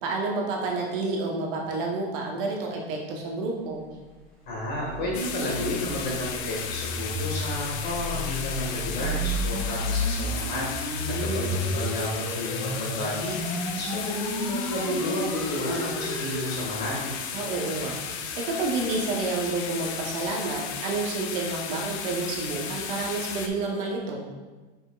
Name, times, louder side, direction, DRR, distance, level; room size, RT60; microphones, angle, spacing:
voice 1, 0.0-3.8 10.9-11.5 17.3-18.0 18.4-24.2, right 3 dB, 50° right, 0 dB, 1.0 m, -29 dB
sound 1, 4.3-16.5, equal, ahead, 0.9 m, -32 dB
voice 2, 4.5-10.7 11.3-13.3 13.7-17.2, left 1 dB, 30° left, -4 dB, 1.6 m, -31 dB
sound 2, 5.1-23.5, left 7 dB, 75° left, 0.8 m, -35 dB
7.7 x 5.7 x 2.4 m, 1.3 s
supercardioid pair, 175°, 33 cm